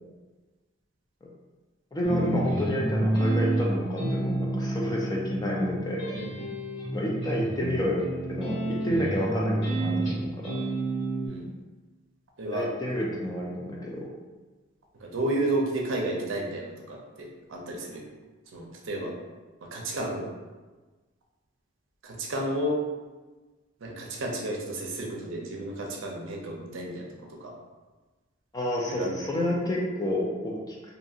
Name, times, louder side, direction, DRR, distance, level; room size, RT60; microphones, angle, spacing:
voice 1, 1.9-6.0 6.9-10.6 12.5-14.1 28.5-30.8, left 1 dB, 20° left, -2 dB, 0.4 m, -29 dB
sound 1, 2.0-11.3, right 1 dB, 70° left, 1.4 m, -29 dB
voice 2, 12.4-13.1 15.0-18.1 18.5-19.1 19.6-20.3 22.0-22.8 23.8-27.1 27.4-27.5 28.8-29.5, right 1 dB, 70° right, 0 dB, 0.5 m, -32 dB
2.7 x 2.6 x 2.4 m, 1.3 s
head